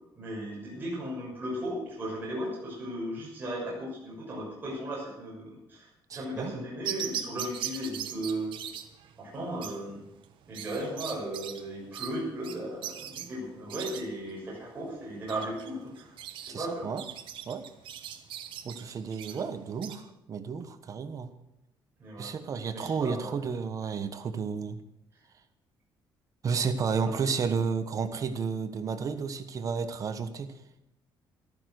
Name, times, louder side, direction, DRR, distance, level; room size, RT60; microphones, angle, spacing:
voice 1, 0.2-8.5 9.2-10.1 10.5-16.1 16.4-16.9 22.0-22.3 22.7-23.3 27.0-27.2, right 1 dB, 25° right, -6 dB, 6.6 m, -36 dB
voice 2, 6.1-6.6 16.5-17.0 17.5-17.6 18.6-21.3 22.2-24.8 26.4-30.5, right 5 dB, 40° right, 10 dB, 1.3 m, -32 dB
sound 1, 6.8-20.0, right 10 dB, 75° right, 1.4 m, -40 dB
14.0 x 13.0 x 6.4 m, 0.85 s
cardioid pair, 145°, 8 cm